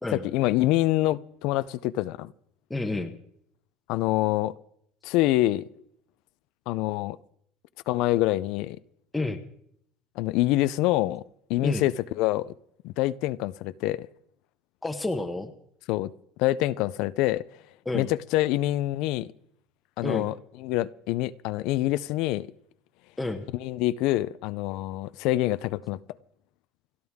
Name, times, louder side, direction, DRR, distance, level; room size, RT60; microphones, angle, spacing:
voice 1, 0.3-2.3 3.9-4.5 5.0-5.7 6.7-7.2 7.9-8.8 10.2-11.2 11.5-12.5 12.8-14.1 15.9-16.1 16.4-17.4 17.9-19.3 20.0-20.3 20.6-22.5 23.6-26.0, left 16 dB, 60° left, 0.5 m, -26 dB
voice 2, 2.7-3.1 9.1-9.4 11.6-11.8 14.8-15.5 17.8-18.1 20.0-20.3 23.2-23.5, left 2 dB, 5° left, 1.0 m, -29 dB
30.0 x 11.0 x 3.6 m
cardioid pair, 165°, 0 cm